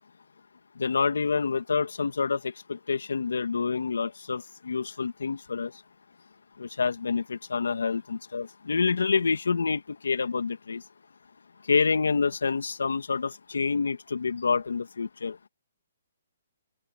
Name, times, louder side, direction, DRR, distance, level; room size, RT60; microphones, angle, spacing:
voice 1, 0.8-5.8 6.6-10.8 11.6-15.4, left 5 dB, 85° left, 2.0 m, -27 dB
open air
hypercardioid pair, 140°, 0 cm